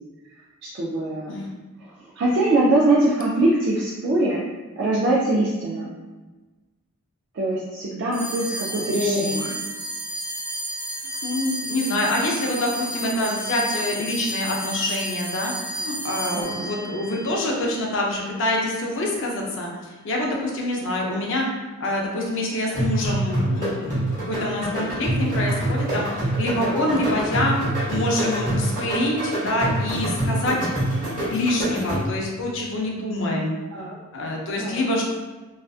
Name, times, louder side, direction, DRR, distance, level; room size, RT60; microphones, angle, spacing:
voice 1, 0.6-1.4 1.8-4.4 4.8-5.9 7.3-9.5 16.3-16.7 26.7-27.0 33.7-34.0 34.6-34.8, right 2 dB, 50° right, -5 dB, 0.3 m, -23 dB
sound 1, 8.1-18.8, right 1 dB, 5° left, 0.7 m, -32 dB
voice 2, 8.8-9.5 11.2-19.7 20.0-21.4 21.8-27.5 27.9-30.6 31.3-33.5 34.1-35.0, left 1 dB, 55° left, -1 dB, 0.5 m, -26 dB
sound 2, 22.8-32.3, right 1 dB, 35° right, 0.9 m, -26 dB
2.4 x 2.4 x 2.3 m, 1.2 s
head